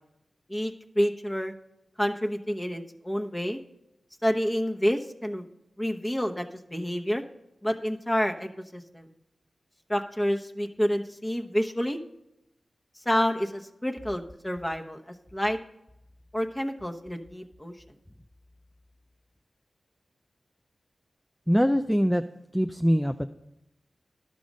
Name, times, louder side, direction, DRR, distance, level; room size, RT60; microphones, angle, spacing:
voice 1, 0.5-1.5 2.0-3.6 4.2-5.5 5.8-7.2 7.6-9.1 9.9-12.0 13.0-15.6 16.3-17.7, equal, 15° left, 3 dB, 1.0 m, -28 dB
voice 2, 21.5-22.2 22.5-23.3, equal, ahead, 7 dB, 0.4 m, -23 dB
11.5 x 6.2 x 5.2 m, 0.89 s
cardioid pair, 50°, 0 cm